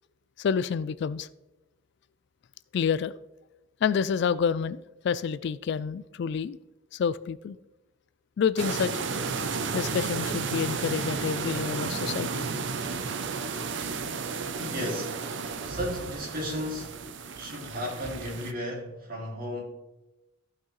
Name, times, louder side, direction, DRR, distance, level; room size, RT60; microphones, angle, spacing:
voice 1, 0.4-1.3 2.7-3.1 3.8-6.6 6.9-7.6 8.4-9.0 9.7-12.5, left 6 dB, 60° left, 0.3 m, -28 dB
sound 1, 8.6-18.5, right 4 dB, 65° right, 0.6 m, -33 dB
voice 2, 14.6-15.2 15.7-16.9 17.3-19.6, left 1 dB, 50° right, 2.6 m, -34 dB
14.5 x 5.9 x 3.2 m
head